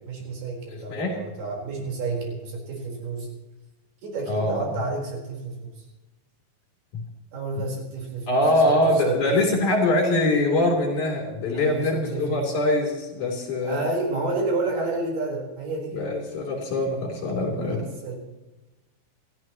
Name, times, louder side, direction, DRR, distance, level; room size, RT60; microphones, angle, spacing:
voice 1, 0.1-3.3 4.0-5.7 7.3-9.4 11.5-12.4 13.6-16.0 17.5-18.2, right 3 dB, 80° right, -1 dB, 6.2 m, -30 dB
voice 2, 0.7-1.2 4.3-4.7 6.9-7.0 8.3-13.9 15.9-17.8, left 1 dB, 55° left, 0 dB, 4.8 m, -23 dB
28.5 x 14.0 x 3.0 m, 1.1 s
omnidirectional pair, 4.4 m